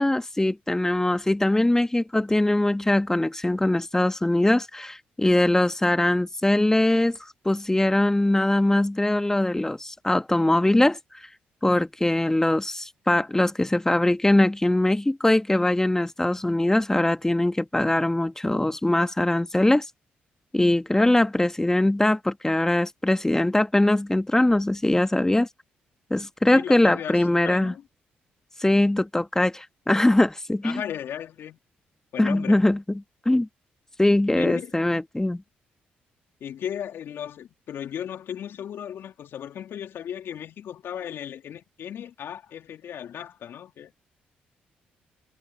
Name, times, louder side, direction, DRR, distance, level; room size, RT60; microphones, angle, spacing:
voice 1, 0.0-7.2 7.4-11.0 11.6-19.8 20.5-25.5 26.1-27.7 28.6-30.8 32.2-33.0 33.2-33.5 34.0-35.4, left 1 dB, 10° left, 1.5 m, -22 dB
voice 2, 26.5-27.8 30.6-31.6 32.1-32.7 34.4-35.0 36.4-43.9, left 9 dB, 65° left, 3.1 m, -36 dB
supercardioid pair, 55°, 4 cm